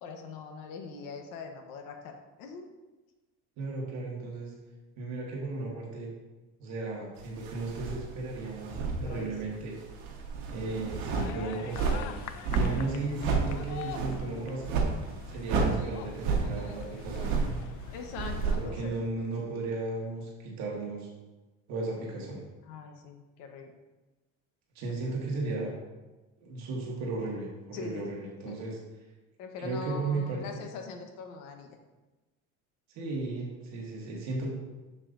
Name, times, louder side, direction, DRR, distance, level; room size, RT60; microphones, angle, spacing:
voice 1, 0.0-2.7 9.0-9.3 17.9-18.9 22.7-23.7 24.8-25.2 27.7-28.1 28.4-28.7 29.4-31.8, left 5 dB, 80° left, 4 dB, 1.1 m, -42 dB
voice 2, 3.6-4.5 5.0-6.1 6.6-9.8 10.5-12.2 12.5-14.8 15.3-17.6 18.6-21.1 21.7-22.4 24.7-25.7 26.4-28.8 29.6-30.6 32.9-34.5, right 3 dB, 55° right, -2 dB, 1.6 m, -35 dB
sound 1, 7.4-9.6 9.9-19.0, right 4 dB, 85° right, 1.3 m, -31 dB
sound 2, 11.1-19.0, left 10 dB, 60° left, 0.4 m, -44 dB
7.3 x 6.8 x 2.6 m, 1.1 s
cardioid pair, 160°, 32 cm